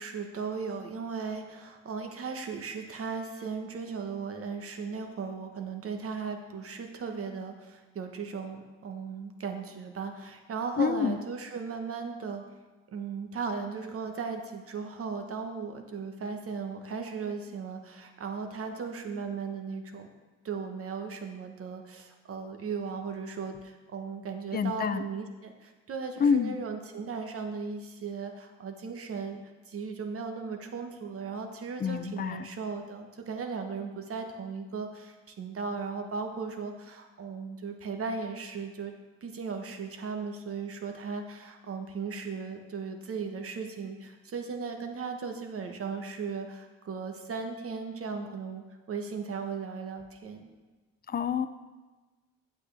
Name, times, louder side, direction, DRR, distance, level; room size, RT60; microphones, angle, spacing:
voice 1, 0.0-12.4 12.9-20.1 20.4-29.4 29.7-38.9 39.2-50.5, right 5 dB, 50° right, 5 dB, 1.2 m, -37 dB
voice 2, 10.8-11.2 24.5-25.0 26.2-26.6 31.8-32.5 51.1-51.5, left 6 dB, 30° left, 12 dB, 0.5 m, -27 dB
8.4 x 8.4 x 3.4 m, 1.3 s
cardioid pair, 90°, 30 cm